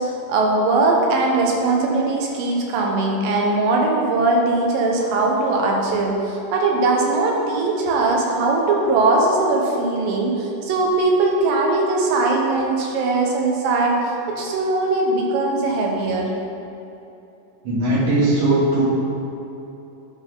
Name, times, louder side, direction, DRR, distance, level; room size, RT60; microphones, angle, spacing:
voice 1, 0.0-16.3, right 2 dB, 85° right, -1 dB, 2.7 m, -20 dB
voice 2, 17.6-18.8, right 2 dB, 55° right, -7 dB, 3.1 m, -18 dB
10.0 x 5.7 x 3.8 m, 2.9 s
omnidirectional pair, 3.9 m